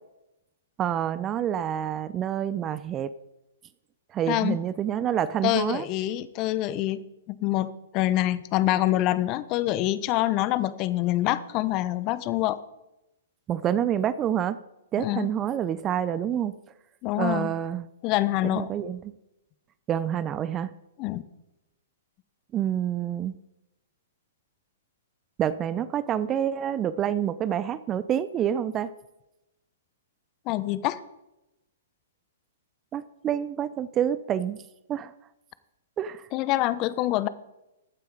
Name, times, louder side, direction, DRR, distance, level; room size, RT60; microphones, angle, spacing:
voice 1, 0.8-3.1 4.1-5.9 13.5-14.6 14.9-16.6 17.2-17.9 18.4-19.1 19.9-20.7 22.5-23.4 25.4-28.9 32.9-34.6 34.9-35.1 36.0-36.3, right 10 dB, 25° right, 15 dB, 0.5 m, -27 dB
voice 2, 4.3-4.6 5.4-7.0 7.3-12.6 15.0-15.3 17.0-17.5 18.0-18.7 21.0-21.2 30.5-31.0 36.3-37.3, left 15 dB, 35° left, 16 dB, 0.8 m, -26 dB
14.5 x 9.4 x 4.8 m, 0.92 s
hypercardioid pair, 120°, 0 cm